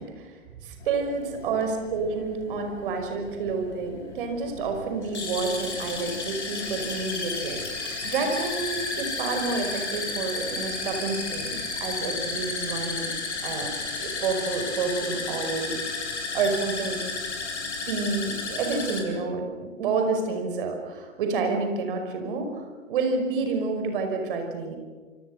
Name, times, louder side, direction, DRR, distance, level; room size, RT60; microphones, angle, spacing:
voice 1, 0.0-13.1 13.4-13.7 14.0-17.0 17.9-24.8, right 4 dB, 45° right, 4 dB, 5.4 m, -29 dB
sound 1, 0.8-19.0, left 3 dB, 60° left, 5.8 m, -33 dB
27.0 x 25.0 x 6.7 m, 1.4 s
figure-of-eight pair, 115°, 39 cm